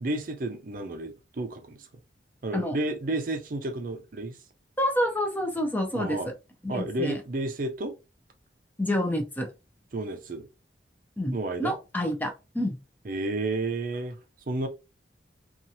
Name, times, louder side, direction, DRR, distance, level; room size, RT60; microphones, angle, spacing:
voice 1, 0.0-1.9 2.4-4.4 5.9-6.3 6.7-7.9 9.9-10.5 11.3-11.7 13.0-14.2 14.5-14.7, right 2 dB, 45° right, 0.5 m, -31 dB
voice 2, 4.8-6.2 6.6-7.2 8.8-9.5 11.2-12.8, left 1 dB, 10° left, 0.5 m, -28 dB
2.8 x 2.4 x 2.7 m
head